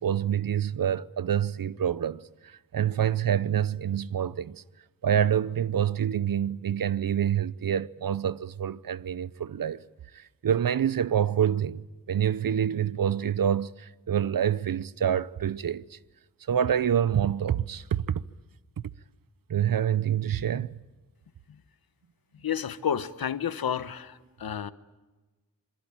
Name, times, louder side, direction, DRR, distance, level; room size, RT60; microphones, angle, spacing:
voice 1, 0.0-4.6 5.0-9.8 10.1-16.0 16.5-18.2 19.5-20.7, right 9 dB, 70° right, 0.8 m, -27 dB
voice 2, 22.4-24.7, left 8 dB, 85° left, 1.1 m, -31 dB
27.0 x 22.0 x 8.9 m
wide cardioid pair, 75°, 35 cm